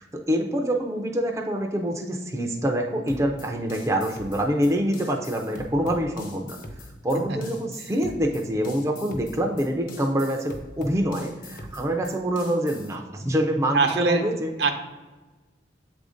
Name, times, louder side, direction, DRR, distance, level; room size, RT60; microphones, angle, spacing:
voice 1, 0.0-6.6 7.0-14.5, equal, 15° right, 1 dB, 0.4 m, -26 dB
sound 1, 3.1-13.0, left 1 dB, 50° left, 0.8 m, -42 dB
voice 2, 13.7-14.2 14.6-14.7, right 4 dB, 70° right, 5 dB, 0.7 m, -21 dB
7.6 x 2.6 x 4.9 m, 1.2 s
head